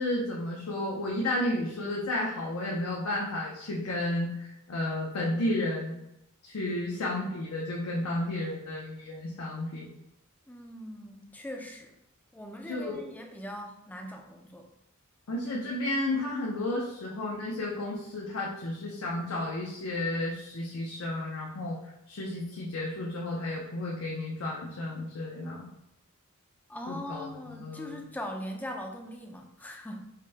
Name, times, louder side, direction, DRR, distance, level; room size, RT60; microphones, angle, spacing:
voice 1, 0.0-6.0 6.4-9.9 12.7-13.0 15.3-21.8 22.1-25.7 26.9-28.0, left 1 dB, 80° left, -3 dB, 0.6 m, -32 dB
voice 2, 10.5-12.0 12.3-14.7 26.7-30.0, equal, 10° left, 3 dB, 0.4 m, -40 dB
4.9 x 2.2 x 2.7 m, 0.82 s
head